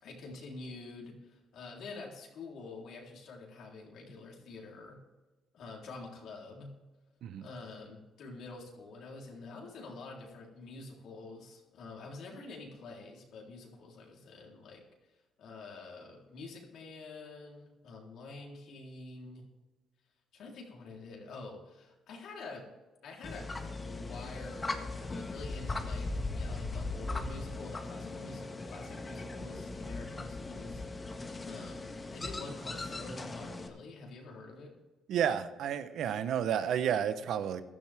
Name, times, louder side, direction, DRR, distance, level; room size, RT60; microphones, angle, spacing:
voice 1, 0.0-5.0 5.5-6.7 7.4-14.8 15.4-19.5 20.3-22.6 23.0-30.8 31.4-34.7 37.2-37.3, left 3 dB, 75° left, -1 dB, 3.8 m, -47 dB
sound 1, 23.2-33.7, left 3 dB, 25° left, 1.7 m, -39 dB
voice 2, 35.1-37.6, right 9 dB, 75° right, 12 dB, 0.9 m, -31 dB
15.5 x 12.5 x 3.6 m, 1.2 s
cardioid pair, 80°, 0 cm